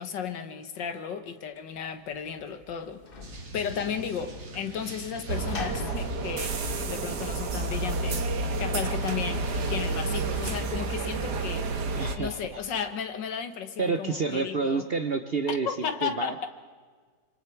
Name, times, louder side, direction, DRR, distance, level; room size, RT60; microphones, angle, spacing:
voice 1, 0.0-3.0 3.5-6.6 6.9-8.3 8.6-11.7 12.2-14.9 15.5-16.5, left 7 dB, 85° left, 9 dB, 2.0 m, -34 dB
Sliding door / Slam, 1.8-7.6, left 4 dB, 35° left, 1.2 m, -44 dB
sound 1, 3.2-10.6, right 2 dB, 85° right, 3.0 m, -43 dB
sound 2, 5.3-12.2, right 3 dB, 65° right, 1.9 m, -30 dB
voice 2, 12.0-12.6 13.8-15.7 16.0-16.5, right 4 dB, 50° right, 8 dB, 0.7 m, -29 dB
27.0 x 26.0 x 4.6 m, 1.5 s
omnidirectional pair, 1.9 m